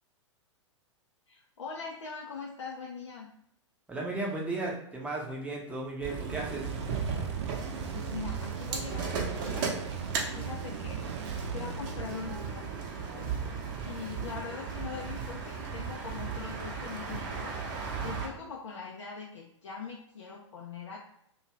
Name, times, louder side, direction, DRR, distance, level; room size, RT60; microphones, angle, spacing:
voice 1, 1.3-3.3 7.8-9.7 10.3-12.7 13.8-17.5 18.0-21.0, left 5 dB, 70° left, -2 dB, 0.5 m, -42 dB
voice 2, 3.9-6.7, right 2 dB, 10° right, -3 dB, 0.7 m, -35 dB
sound 1, 6.0-18.3, right 5 dB, 40° right, 0.7 m, -36 dB
sound 2, 6.4-12.8, right 6 dB, 60° right, 0.4 m, -40 dB
2.6 x 2.3 x 3.0 m, 0.73 s
figure-of-eight pair, 105°, 16 cm